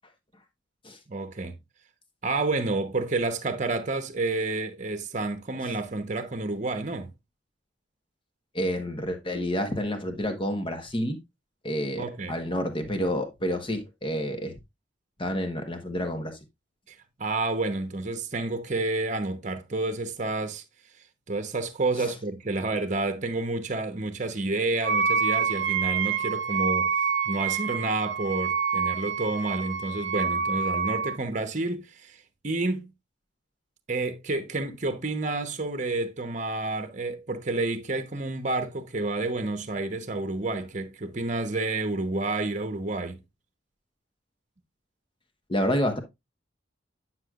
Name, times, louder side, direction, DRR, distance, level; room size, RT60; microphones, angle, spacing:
voice 1, 1.1-1.6 2.2-7.1 12.0-12.3 16.9-20.6 21.3-26.9 27.2-32.2 32.4-32.9 33.9-43.2, right 2 dB, 40° right, 1.0 m, -29 dB
voice 2, 8.5-11.2 11.6-14.6 15.2-16.4 22.0-22.1 45.5-46.0, equal, 25° left, 1.2 m, -29 dB
Wind instrument woodwind instrument, 24.8-31.2, right 6 dB, 70° right, 0.7 m, -27 dB
9.7 x 6.1 x 2.4 m
head